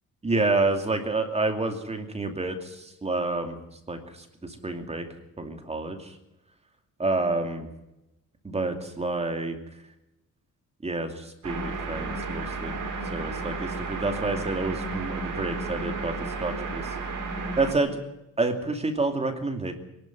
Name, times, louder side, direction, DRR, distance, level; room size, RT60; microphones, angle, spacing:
voice 1, 0.2-3.6 3.9-5.1 5.4-6.1 7.0-7.7 8.4-9.6 10.8-12.8 13.1-16.1 16.4-16.9 17.6-17.9 18.4-19.7, right 3 dB, 20° right, 5 dB, 2.6 m, -28 dB
sound 1, 11.4-17.7, right 3 dB, 65° right, 4.7 m, -33 dB
23.5 x 12.0 x 9.3 m, 0.92 s
cardioid pair, 150°, 33 cm